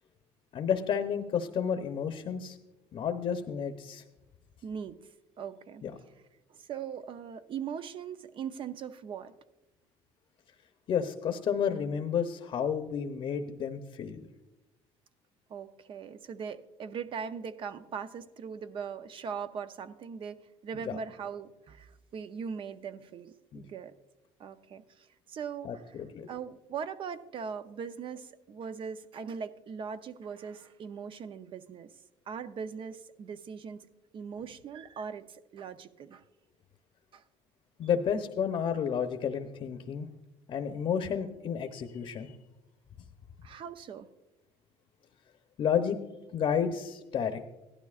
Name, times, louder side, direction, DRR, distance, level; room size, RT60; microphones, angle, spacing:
voice 1, 0.5-2.6 2.9-4.0 5.8-5.9 10.9-14.2 20.9-21.0 23.5-23.6 25.6-25.7 26.1-26.3 37.8-40.1 40.5-42.4 45.6-46.0 46.3-47.4, left 7 dB, 50° left, 6 dB, 0.8 m, -31 dB
voice 2, 4.6-5.0 5.4-5.8 6.5-9.3 15.5-23.9 24.4-31.9 32.3-33.9 34.1-36.2 37.1-37.2 43.4-44.1, right 6 dB, 50° right, 11 dB, 0.7 m, -40 dB
16.0 x 12.0 x 2.4 m, 1.0 s
cardioid pair, 100°, 11 cm